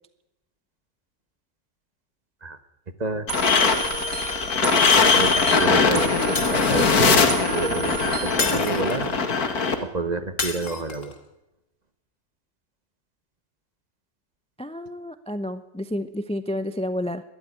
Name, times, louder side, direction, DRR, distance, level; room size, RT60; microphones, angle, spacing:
sound 1, 3.3-9.7, left 4 dB, 70° left, 2.3 m, -21 dB
sound 2, 3.3-8.6, right 3 dB, 60° right, 2.1 m, -32 dB
voice 1, 4.6-6.1 6.5-9.1 9.8-11.1, right 3 dB, 30° right, 11 dB, 1.2 m, -30 dB
Shatter, 6.4-7.1 8.4-9.2 10.4-11.2, left 4 dB, 50° left, 2.5 m, -30 dB
voice 2, 14.6-17.2, left 1 dB, 5° left, 12 dB, 0.5 m, -30 dB
19.5 x 13.5 x 9.9 m, 0.92 s
omnidirectional pair, 1.7 m